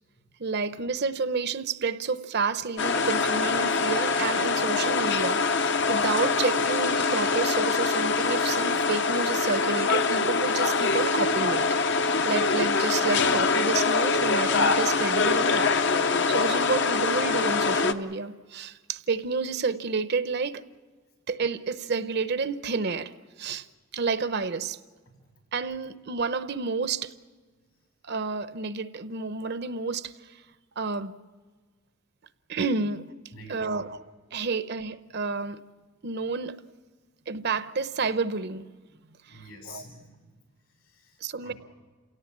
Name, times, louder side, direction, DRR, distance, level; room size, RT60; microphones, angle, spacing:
voice 1, 0.4-11.6 12.2-15.7 16.3-20.6 21.3-23.1 23.4-23.7 23.9-24.8 25.5-27.1 28.0-30.3 30.8-31.2 32.5-33.0 33.5-34.0 34.3-35.6 36.0-36.6 37.3-38.7 39.3-39.8 41.2-41.5, right 4 dB, 50° right, 0.7 m, -30 dB
sound 1, 2.8-17.9, left 4 dB, 55° left, 0.8 m, -24 dB
voice 2, 33.3-33.9 34.4-34.5 39.3-40.4 40.6-41.6, left 1 dB, 90° left, 7.9 m, -48 dB
29.5 x 17.5 x 7.3 m
head